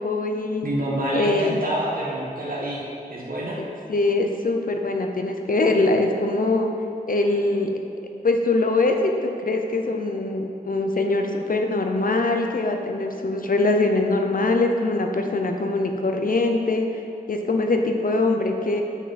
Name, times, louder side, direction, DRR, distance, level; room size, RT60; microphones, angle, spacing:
voice 1, 0.0-0.7 1.1-1.5 3.9-6.7 7.1-7.7 8.2-16.9 17.3-18.8, left 2 dB, 65° left, 4 dB, 0.7 m, -22 dB
voice 2, 0.6-2.8 3.1-3.6, right 1 dB, 65° right, -5 dB, 1.3 m, -27 dB
8.0 x 5.9 x 4.2 m, 2.7 s
wide cardioid pair, 75°, 16 cm